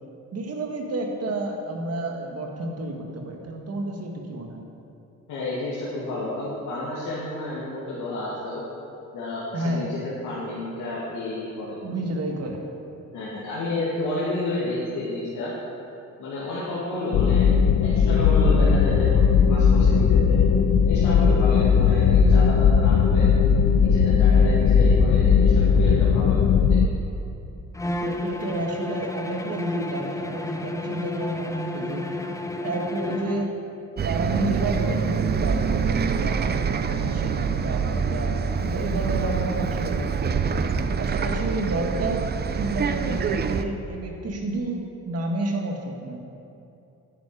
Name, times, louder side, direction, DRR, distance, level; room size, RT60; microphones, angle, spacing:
voice 1, 0.3-4.6 9.5-9.9 11.8-12.6 18.4-18.7 24.4-24.6 28.0-32.0 32.6-33.5 34.0-40.3 41.0-42.2 42.5-46.2, right 2 dB, 55° right, 2 dB, 1.7 m, -30 dB
voice 2, 5.3-8.6 9.1-11.8 13.1-15.5 16.2-17.5 17.8-20.4 20.8-23.3 23.8-26.8, left 2 dB, 80° left, -8 dB, 2.3 m, -31 dB
sound 1, 17.1-26.9, left 6 dB, 60° left, 0.6 m, -18 dB
Bowed string instrument, 27.7-33.6, left 2 dB, 10° left, 0.7 m, -31 dB
Bus, 34.0-43.6, right 6 dB, 35° right, 0.6 m, -25 dB
10.0 x 9.3 x 4.9 m, 2.7 s
cardioid pair, 90°, 30 cm